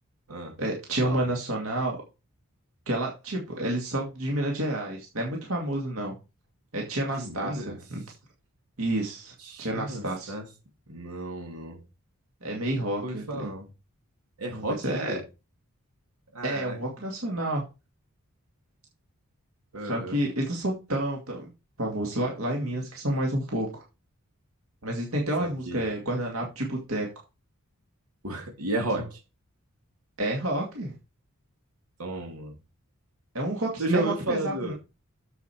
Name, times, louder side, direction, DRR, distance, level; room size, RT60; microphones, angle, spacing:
voice 1, 0.6-2.0 2.9-6.1 6.7-8.0 8.8-9.3 9.6-10.3 12.4-13.5 14.5-15.2 16.4-17.6 19.8-21.5 21.8-23.8 24.8-27.1 30.2-30.9 33.3-34.7, right 1 dB, 70° right, 2.3 m, -29 dB
voice 2, 7.1-7.8 9.4-10.5 10.9-11.8 12.8-13.7 14.4-15.2 16.3-16.8 19.7-20.2 25.4-25.9 28.2-29.2 32.0-32.5 33.8-34.7, right 1 dB, 85° right, 2.8 m, -33 dB
8.2 x 7.4 x 4.5 m
head